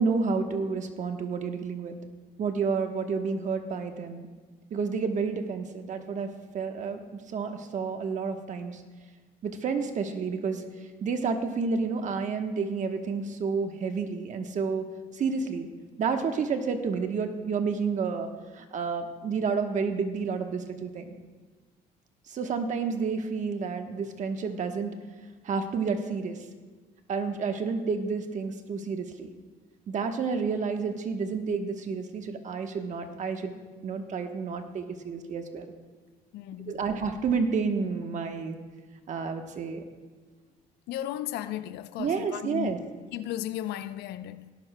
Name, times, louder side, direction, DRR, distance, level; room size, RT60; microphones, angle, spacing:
voice 1, 0.0-1.9 2.4-4.3 4.7-7.0 7.3-8.7 9.4-10.6 11.0-14.9 15.2-15.7 16.0-18.3 18.6-21.1 22.3-24.9 25.4-26.4 27.1-29.3 29.9-33.5 33.8-35.6 36.7-38.5 39.1-39.8 42.0-42.8, right 5 dB, 45° right, 1.1 m, -30 dB
voice 2, 36.3-36.8 40.9-42.7 43.1-44.5, left 12 dB, 80° left, 0.5 m, -35 dB
18.0 x 10.5 x 2.2 m
cardioid pair, 110°, 17 cm